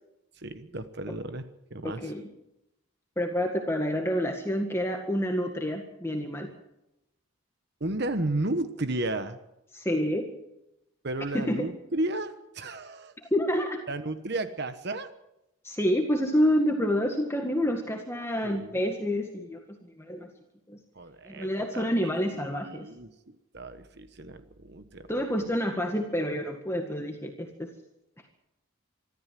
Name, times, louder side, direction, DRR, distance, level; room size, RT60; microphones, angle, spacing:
voice 1, 0.4-2.1 7.8-9.4 11.0-13.1 13.9-15.1 18.4-18.8 20.9-22.1 22.6-25.1, right 2 dB, 50° right, 10 dB, 1.2 m, -33 dB
voice 2, 1.8-2.2 3.2-6.5 9.7-10.3 11.3-11.7 13.3-13.8 15.6-19.6 20.0-20.3 20.7-20.8 21.3-22.8 25.1-27.7, equal, 10° left, 3 dB, 1.8 m, -28 dB
26.0 x 13.5 x 7.7 m, 0.89 s
head